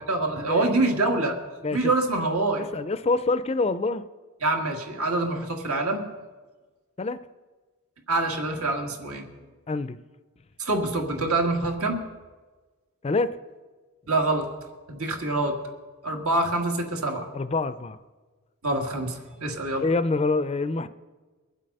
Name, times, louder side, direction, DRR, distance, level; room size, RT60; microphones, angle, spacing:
voice 1, 0.1-1.4 1.7-2.7 4.4-6.1 8.1-9.3 10.6-12.0 14.1-14.5 14.9-15.6 16.0-17.3 18.6-19.8, right 2 dB, 85° right, 2 dB, 2.0 m, -25 dB
voice 2, 2.7-4.0 7.0-7.2 9.7-10.0 13.0-13.4 17.3-18.0 19.8-20.9, left 3 dB, 30° left, 13 dB, 0.4 m, -25 dB
22.5 x 7.6 x 5.4 m, 1.3 s
head